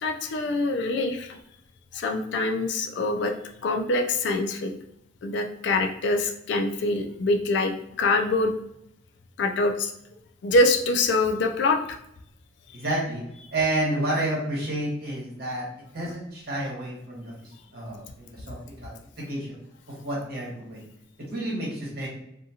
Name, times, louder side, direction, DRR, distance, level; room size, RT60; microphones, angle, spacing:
voice 1, 0.0-1.4 1.9-3.3 3.6-4.7 5.2-8.5 9.4-9.9 10.4-11.8, left 2 dB, 60° left, 4 dB, 0.3 m, -24 dB
voice 2, 12.7-13.2 13.5-15.7 15.9-19.6 19.9-20.8 21.3-22.1, right 1 dB, 55° right, -5 dB, 1.2 m, -30 dB
2.6 x 2.4 x 2.7 m, 0.80 s
head